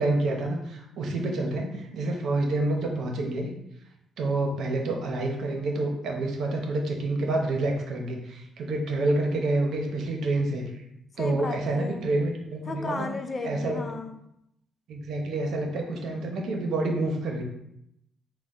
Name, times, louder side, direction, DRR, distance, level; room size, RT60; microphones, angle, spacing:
voice 1, 0.0-3.5 4.2-10.6 11.2-13.1 13.4-13.8 14.9-17.4, right 2 dB, 70° right, 2 dB, 0.9 m, -28 dB
voice 2, 11.2-12.1 12.7-14.2, left 3 dB, 35° left, 6 dB, 0.5 m, -34 dB
4.0 x 2.3 x 4.6 m, 0.79 s
cardioid pair, 90°, 0 cm